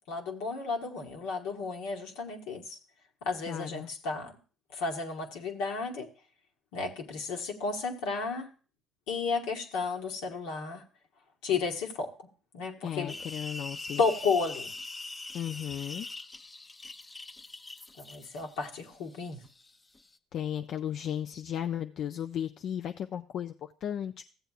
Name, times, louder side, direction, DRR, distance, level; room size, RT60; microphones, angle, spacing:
voice 1, 0.1-2.8 3.2-4.4 4.7-6.1 6.7-8.5 9.1-10.8 11.4-12.3 12.5-13.1 14.0-14.7 18.0-19.4, left 4 dB, 80° left, 1 dB, 1.4 m, -33 dB
voice 2, 3.5-3.9 12.8-14.0 15.3-16.1 20.3-24.2, left 10 dB, 60° left, 7 dB, 0.4 m, -35 dB
sound 1, 13.1-20.2, left 3 dB, 25° left, 0.7 m, -43 dB
15.0 x 7.9 x 2.4 m, 0.37 s
supercardioid pair, 75°, 0 cm